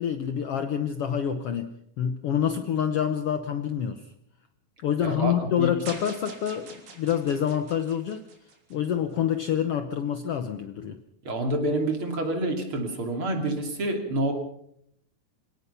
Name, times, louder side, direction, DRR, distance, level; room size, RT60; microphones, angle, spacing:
voice 1, 0.0-4.1 4.8-8.3 8.7-11.0, left 9 dB, 85° left, 9 dB, 1.3 m, -27 dB
voice 2, 5.0-5.8 11.3-14.3, right 1 dB, 40° right, 4 dB, 3.4 m, -28 dB
sound 1, 5.9-9.1, right 4 dB, 65° right, 5.0 m, -45 dB
26.0 x 18.0 x 5.6 m, 0.72 s
omnidirectional pair, 4.0 m